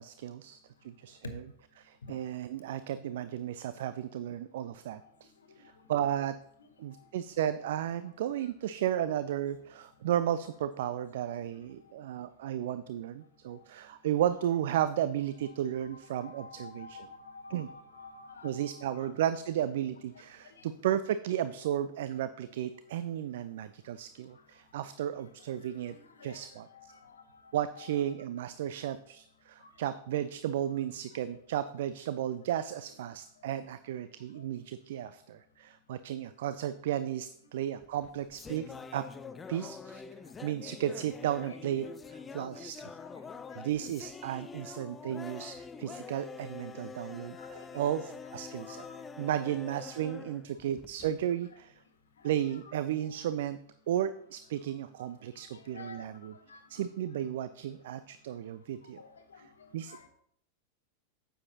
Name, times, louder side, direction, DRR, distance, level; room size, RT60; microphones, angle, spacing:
voice 1, 0.0-1.2 1.8-5.3 5.6-6.4 6.8-17.0 17.5-17.7 18.4-26.0 26.2-26.9 27.5-39.0 39.5-40.0 40.4-43.0 43.6-48.8 49.2-51.7 52.2-53.6 53.9-56.3 56.7-59.0 59.7-60.1, right 11 dB, 55° right, 13 dB, 0.3 m, -34 dB
voice 2, 15.4-19.1 20.4-20.6 25.9-28.1 34.3-34.4 41.4-41.6 45.4-45.5 47.3-47.9 48.6-49.0 50.0-50.1 52.2-52.7 53.0-53.2 55.5-56.6 58.9-59.4 59.9-60.1, left 4 dB, 70° left, 7 dB, 1.0 m, -50 dB
sound 1, 37.8-51.3, left 5 dB, 15° left, 0.4 m, -46 dB
9.5 x 7.9 x 2.8 m, 0.69 s
figure-of-eight pair, 90°, 0 cm